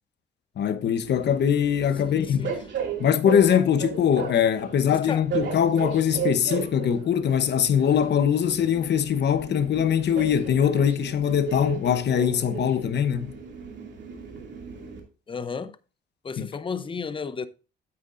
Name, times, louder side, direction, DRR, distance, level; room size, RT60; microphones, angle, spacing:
voice 1, 0.6-2.5 3.0-13.3 16.4-16.5, left 8 dB, 60° left, 1.0 m, -22 dB
Train, 1.0-15.0, right 6 dB, 65° right, 2.5 m, -35 dB
voice 2, 2.0-2.5 4.9-5.2 15.3-15.8 16.2-17.5, left 5 dB, 25° left, 0.6 m, -33 dB
9.1 x 8.5 x 2.6 m
cardioid pair, 90°, 20 cm